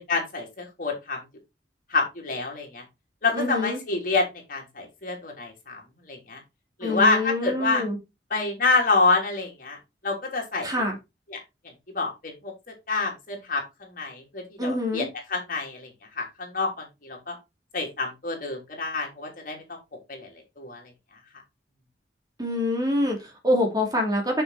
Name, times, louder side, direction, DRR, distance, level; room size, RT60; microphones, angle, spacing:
voice 1, 0.1-1.2 1.9-2.8 3.2-5.8 6.0-6.4 6.8-7.8 8.3-9.8 10.0-10.7 11.3-11.4 11.9-17.4 17.7-19.8 20.1-20.8, left 3 dB, 50° left, 1 dB, 3.1 m, -27 dB
voice 2, 3.3-3.8 6.8-8.0 10.6-11.0 14.6-15.1 22.4-24.4, left 1 dB, 20° right, 2 dB, 2.3 m, -25 dB
6.7 x 6.2 x 4.1 m, 0.24 s
head